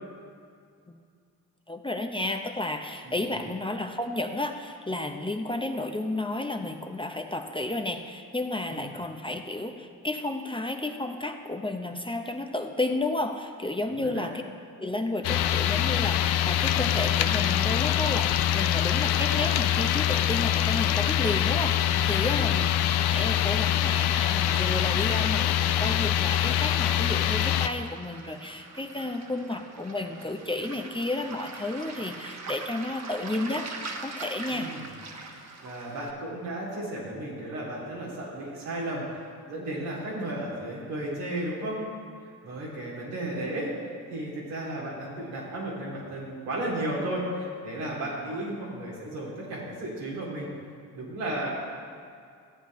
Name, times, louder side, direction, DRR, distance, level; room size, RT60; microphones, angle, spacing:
voice 1, 1.7-14.4 14.8-33.7 34.0-34.7, left 2 dB, 10° left, 5 dB, 0.8 m, -32 dB
voice 2, 3.0-3.5 8.7-8.9 13.9-14.3 22.3-22.6 34.5-34.9 35.6-39.0 39.5-41.8 42.4-43.7 44.1-50.5 50.9-51.5, right 1 dB, 90° right, -6 dB, 2.7 m, -34 dB
sound 1, 15.2-27.7, left 11 dB, 70° left, 0.6 m, -24 dB
Waves surf, 24.1-36.1, right 3 dB, 40° right, 1.3 m, -43 dB
14.0 x 8.2 x 3.1 m, 2.3 s
hypercardioid pair, 50°, 41 cm